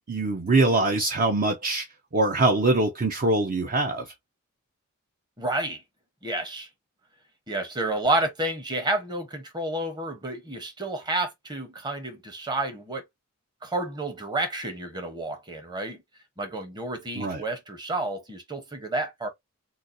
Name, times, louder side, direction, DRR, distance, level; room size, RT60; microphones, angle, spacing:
voice 1, 0.1-1.9 2.1-4.1 17.2-17.4, right 2 dB, 40° right, 0.5 m, -23 dB
voice 2, 5.4-5.8 6.2-6.7 7.5-13.0 13.6-16.0 16.4-19.3, right 2 dB, 20° right, 0.8 m, -30 dB
3.9 x 2.3 x 2.6 m
head